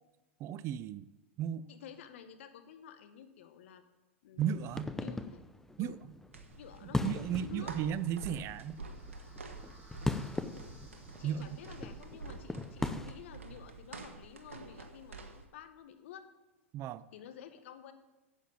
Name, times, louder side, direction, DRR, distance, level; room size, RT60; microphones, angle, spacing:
voice 1, 0.4-1.1 1.4-1.7 4.4-4.9 5.8-6.0 6.9-8.8 11.2-11.5 16.7-17.0, right 9 dB, 40° right, 0.6 m, -35 dB
voice 2, 1.7-3.8 4.2-5.4 5.8-6.0 6.5-7.7 10.4-10.8 11.2-16.3 17.1-17.9, left 9 dB, 70° left, 1.5 m, -51 dB
sound 1, 4.4-13.1, left 2 dB, 5° left, 0.8 m, -40 dB
sound 2, 6.3-15.4, right 3 dB, 90° right, 1.5 m, -48 dB
sound 3, 7.7-12.8, equal, 25° right, 5.1 m, -61 dB
10.0 x 8.1 x 8.5 m
hypercardioid pair, 105°, 7 cm